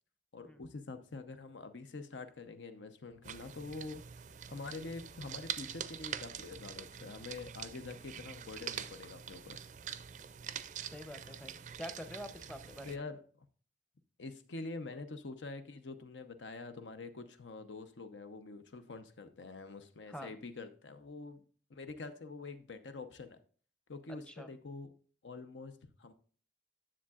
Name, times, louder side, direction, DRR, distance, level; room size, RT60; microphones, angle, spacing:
voice 1, 0.3-4.0 4.5-9.6 12.8-13.5 14.2-21.4 21.7-23.4 23.9-24.9 25.2-26.1, left 3 dB, 85° left, 0.7 m, -46 dB
sound 1, 3.2-13.0, right 8 dB, 40° right, 0.4 m, -45 dB
voice 2, 10.9-13.0 20.1-20.3 24.3-24.5, equal, 5° left, 0.6 m, -46 dB
10.0 x 7.2 x 2.4 m
head